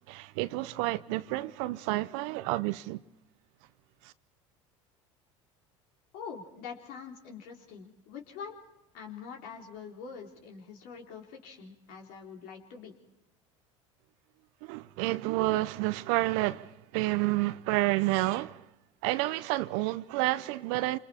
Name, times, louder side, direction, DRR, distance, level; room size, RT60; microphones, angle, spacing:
voice 1, 0.1-3.0 4.0-4.1 14.6-18.6 19.0-21.0, right 19 dB, 65° right, 0.8 m, -30 dB
voice 2, 6.1-8.6 8.9-12.9, left 6 dB, 65° left, 4.1 m, -44 dB
27.5 x 27.0 x 4.4 m
hypercardioid pair, 75°, 17 cm